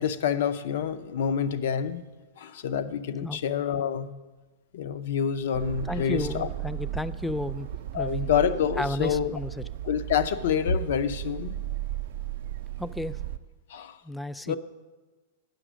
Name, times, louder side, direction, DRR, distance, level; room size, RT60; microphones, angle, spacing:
voice 1, 0.0-2.0 2.4-4.1 4.7-6.5 7.9-9.3 9.8-11.6 13.7-14.0 14.5-14.6, left 7 dB, 70° left, 13 dB, 0.5 m, -27 dB
sound 1, 5.5-13.4, right 12 dB, 70° right, 0.4 m, -35 dB
voice 2, 5.9-7.7 7.9-8.3 8.8-9.6 12.8-13.2 14.0-14.6, left 1 dB, 5° left, 15 dB, 0.3 m, -32 dB
9.0 x 6.1 x 6.1 m, 1.2 s
hypercardioid pair, 110°, 0 cm